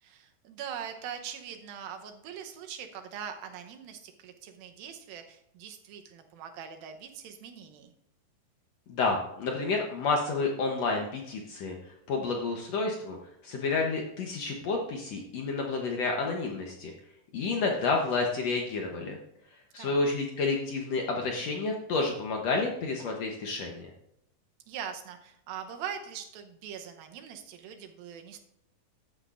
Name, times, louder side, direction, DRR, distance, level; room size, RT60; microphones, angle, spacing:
voice 1, 0.0-7.9 19.8-20.0 24.7-28.4, right 8 dB, 90° right, 6 dB, 2.7 m, -42 dB
voice 2, 8.9-13.2 13.4-16.9 17.3-19.2 19.7-23.9, left 3 dB, 70° left, 1 dB, 1.6 m, -30 dB
14.0 x 9.6 x 2.5 m, 0.79 s
omnidirectional pair, 4.0 m